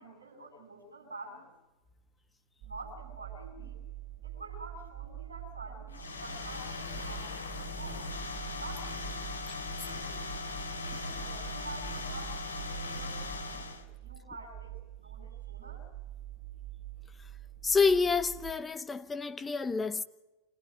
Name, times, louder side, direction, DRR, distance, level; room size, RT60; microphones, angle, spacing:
voice 1, 0.0-1.5 2.6-3.8 4.2-8.1 8.5-9.2 9.7-15.8, right 2 dB, 75° right, 8.0 m, -48 dB
sound 1, 2.6-18.5, right 13 dB, 45° right, 4.2 m, -45 dB
sound 2, 5.9-13.8, left 4 dB, 75° left, 2.7 m, -39 dB
voice 2, 17.6-20.0, left 4 dB, 15° left, 0.9 m, -28 dB
25.5 x 17.0 x 9.4 m
figure-of-eight pair, 90°, 0 cm